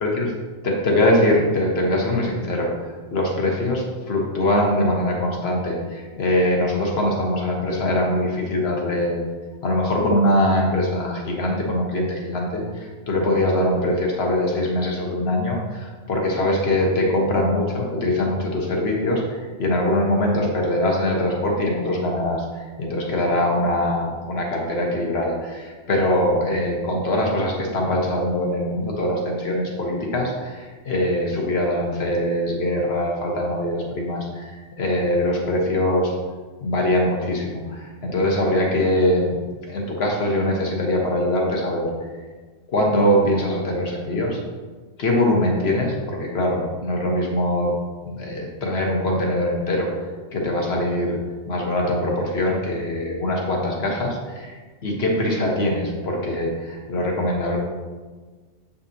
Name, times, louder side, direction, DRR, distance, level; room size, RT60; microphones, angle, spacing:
voice 1, 0.6-2.7 3.1-9.2 9.6-36.1 36.6-39.4 39.7-41.9 42.7-44.4 45.0-47.7 48.0-49.9 50.3-51.2 51.5-57.6, left 1 dB, 60° left, -1 dB, 1.4 m, -22 dB
7.7 x 5.5 x 2.7 m, 1.4 s
omnidirectional pair, 1.2 m